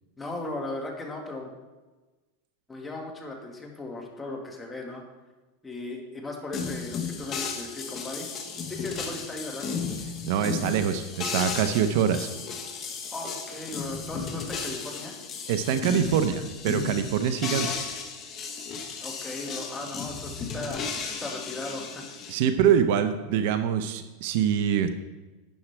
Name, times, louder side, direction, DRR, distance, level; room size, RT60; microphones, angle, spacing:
voice 1, 0.2-1.5 2.7-5.0 5.6-8.3 8.7-9.7 13.1-15.2 19.0-20.9 21.2-22.1, left 2 dB, 10° left, 0 dB, 1.6 m, -37 dB
sound 1, 6.5-22.3, left 5 dB, 25° left, 1.2 m, -34 dB
voice 2, 10.2-12.3 15.5-17.8 22.3-24.9, right 8 dB, 60° right, 9 dB, 0.7 m, -24 dB
12.0 x 8.7 x 3.4 m, 1.2 s
supercardioid pair, 155°, 0 cm